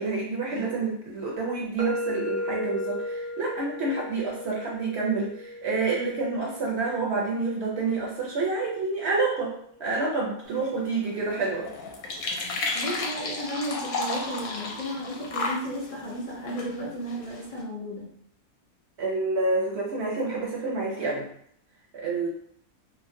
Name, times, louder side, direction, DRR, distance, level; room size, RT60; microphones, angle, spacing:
voice 1, 0.0-9.5 9.8-11.7 19.0-21.3 21.9-22.3, right 3 dB, 65° right, -3 dB, 0.7 m, -28 dB
sound 1, 1.8-9.6, left 1 dB, 80° right, 1.1 m, -36 dB
sound 2, 10.4-17.6, left 3 dB, 75° left, 1.0 m, -34 dB
voice 2, 12.7-18.1, equal, 60° left, -7 dB, 0.4 m, -34 dB
3.0 x 2.1 x 2.6 m, 0.67 s
omnidirectional pair, 1.5 m